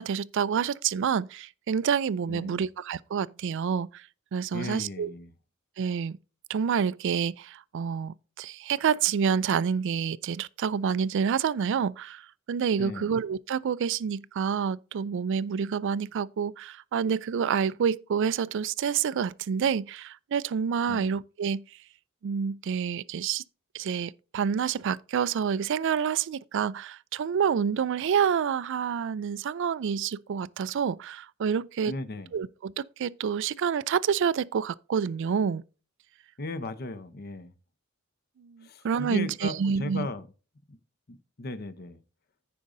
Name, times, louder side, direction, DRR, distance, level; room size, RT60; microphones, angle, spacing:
voice 1, 0.0-4.0 4.3-5.1 5.8-6.2 6.5-21.6 22.2-23.4 23.7-31.9 32.3-35.6 38.4-40.1, right 7 dB, 60° right, 0.4 m, -28 dB
voice 2, 2.3-2.7 4.5-5.3 12.8-13.1 20.9-21.1 31.9-32.3 36.4-37.5 38.6-40.3 40.7-40.8 41.1-42.0, left 2 dB, 50° left, 0.8 m, -37 dB
15.0 x 5.0 x 2.6 m
head